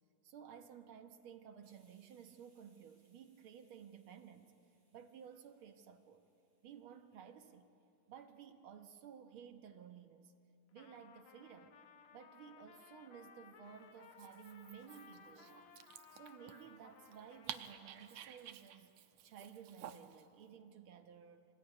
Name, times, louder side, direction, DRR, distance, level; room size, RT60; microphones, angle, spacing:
voice 1, 0.2-4.5 4.9-6.2 6.6-7.7 8.1-10.3 10.7-11.8 12.1-15.7 16.1-19.0 19.2-21.4, right 8 dB, 60° right, 6 dB, 1.6 m, -55 dB
Hiss, 1.6-9.0, right 2 dB, 25° right, 5.3 m, -80 dB
Trumpet, 10.7-18.6, left 6 dB, 70° left, 2.5 m, -61 dB
Dog, 14.0-20.3, right 10 dB, 75° right, 2.0 m, -53 dB
26.0 x 20.0 x 9.6 m, 2.7 s
omnidirectional pair, 3.4 m